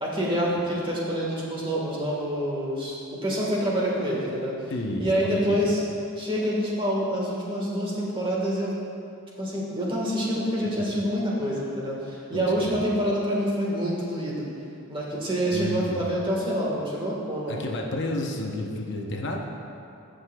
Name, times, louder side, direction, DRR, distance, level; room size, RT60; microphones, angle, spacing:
voice 1, 0.0-4.5 5.0-5.8 6.2-8.7 9.4-14.5 14.9-17.6, equal, 25° right, -4 dB, 1.5 m, -27 dB
voice 2, 4.7-5.8 12.3-12.8 15.5-16.0 17.5-19.4, left 1 dB, 55° left, 0 dB, 0.7 m, -31 dB
16.0 x 6.4 x 2.3 m, 2.6 s
head